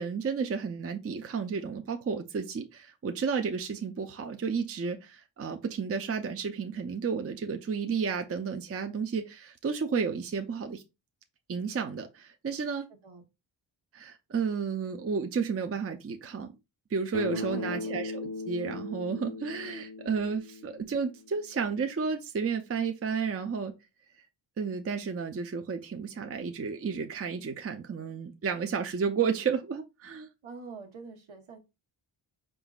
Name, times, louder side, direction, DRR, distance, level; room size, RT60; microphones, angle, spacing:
voice 1, 0.0-10.8 11.5-12.9 13.9-16.5 16.9-23.7 24.6-30.3, right 5 dB, 30° right, 0.5 m, -32 dB
Bass guitar, 17.1-21.4, left 3 dB, 45° left, 0.7 m, -38 dB
voice 2, 17.3-17.9 30.4-31.6, right 4 dB, 75° right, 1.2 m, -44 dB
4.8 x 3.8 x 2.3 m
cardioid pair, 60°, 48 cm